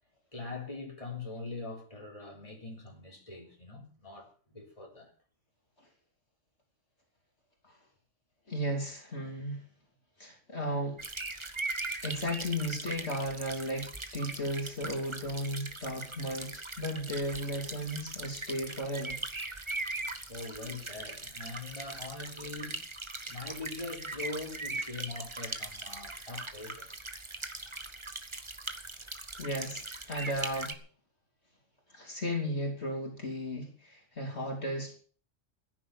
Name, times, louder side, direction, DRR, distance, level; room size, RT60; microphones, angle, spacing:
voice 1, 0.3-5.1 20.3-22.8 23.2-27.0, left 3 dB, 25° left, 4.1 m, -42 dB
voice 2, 8.5-9.6 10.2-11.0 12.0-13.9 14.1-19.2 29.4-30.7 31.9-35.0, equal, 55° left, 3.7 m, -35 dB
sound 1, 11.0-30.7, right 2 dB, 25° right, 1.4 m, -40 dB
15.0 x 10.5 x 7.2 m
omnidirectional pair, 1.3 m